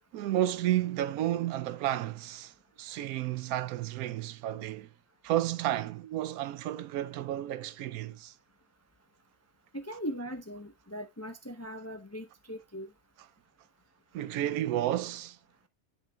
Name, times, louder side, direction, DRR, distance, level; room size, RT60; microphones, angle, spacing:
voice 1, 0.1-4.9 5.2-8.3 14.1-15.4, right 13 dB, 90° right, 1.1 m, -32 dB
voice 2, 9.7-12.9, equal, 15° left, 0.5 m, -39 dB
10.5 x 5.7 x 2.3 m
omnidirectional pair, 1.5 m